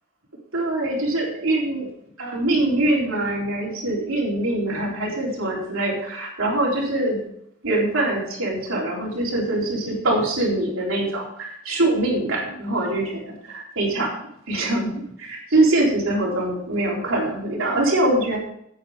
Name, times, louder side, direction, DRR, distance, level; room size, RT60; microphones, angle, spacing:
voice 1, 0.5-1.9 2.2-7.2 7.6-14.1 14.5-18.4, right 2 dB, 75° right, -3 dB, 3.9 m, -23 dB
9.8 x 8.3 x 5.1 m, 0.74 s
head